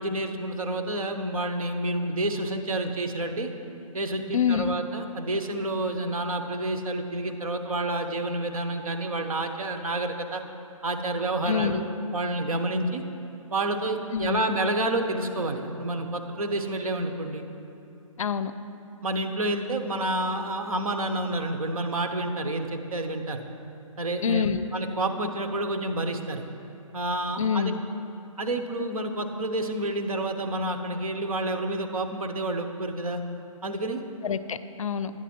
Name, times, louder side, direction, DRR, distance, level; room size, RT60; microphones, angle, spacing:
voice 1, 0.0-3.5 3.9-10.4 10.8-11.8 12.1-13.0 13.5-17.4 19.0-23.4 24.0-26.5 26.9-27.7 28.4-33.2 33.6-34.0, right 1 dB, 80° right, 6 dB, 0.9 m, -29 dB
voice 2, 4.3-4.8 11.5-11.8 14.1-14.4 18.2-18.5 24.2-24.7 27.4-27.8 34.2-35.1, left 7 dB, 70° left, 13 dB, 0.5 m, -26 dB
9.8 x 8.0 x 4.3 m, 2.8 s
hypercardioid pair, 155°, 18 cm